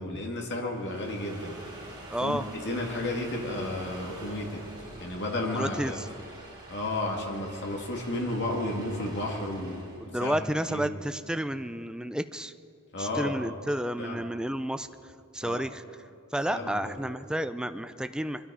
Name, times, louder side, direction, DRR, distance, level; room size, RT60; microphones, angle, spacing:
voice 1, 0.0-1.6 2.2-4.7 5.0-6.0 6.7-10.4 10.7-10.9 12.9-13.6 14.0-14.2 15.4-15.7 16.5-17.2, left 1 dB, 50° left, 0 dB, 2.3 m, -33 dB
sound 1, 0.7-10.1, right 1 dB, 20° right, 4.0 m, -46 dB
voice 2, 2.1-2.4 5.5-6.0 10.1-12.5 13.0-14.9 15.3-15.8 16.3-18.5, right 1 dB, 5° right, 10 dB, 0.4 m, -31 dB
23.5 x 12.5 x 4.9 m, 2.5 s
head